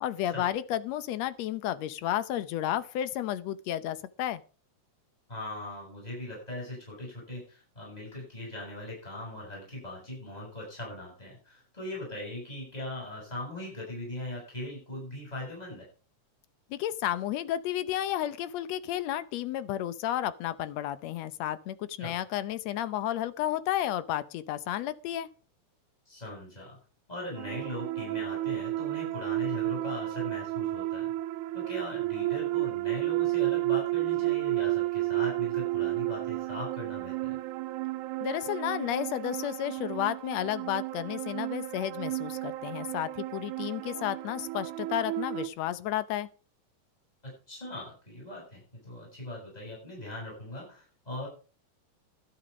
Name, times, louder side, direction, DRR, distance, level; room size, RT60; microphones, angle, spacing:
voice 1, 0.0-4.4 16.7-25.3 38.2-46.3, left 12 dB, 70° left, 1.8 m, -32 dB
voice 2, 5.3-15.8 22.0-22.2 26.1-26.8 27.1-31.1 31.5-37.1 47.5-51.3, left 1 dB, 10° left, 7.8 m, -40 dB
sound 1, 27.4-45.5, right 17 dB, 80° right, 2.1 m, -32 dB
12.0 x 11.0 x 5.1 m
omnidirectional pair, 3.6 m